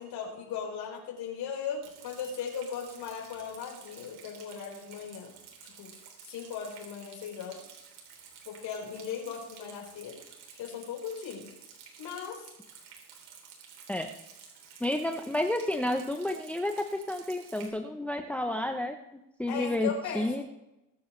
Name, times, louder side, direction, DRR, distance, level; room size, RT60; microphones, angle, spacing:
voice 1, 0.0-5.3 5.8-5.9 6.2-7.6 8.4-10.1 10.5-11.5 12.0-12.4 19.5-20.4, left 7 dB, 70° left, -1 dB, 4.9 m, -37 dB
Rain, 1.8-17.7, right 7 dB, 80° right, 3.5 m, -52 dB
voice 2, 14.8-19.9 20.1-20.4, left 1 dB, 5° left, 5 dB, 0.8 m, -31 dB
22.5 x 7.9 x 3.3 m, 0.89 s
cardioid pair, 115°, 40 cm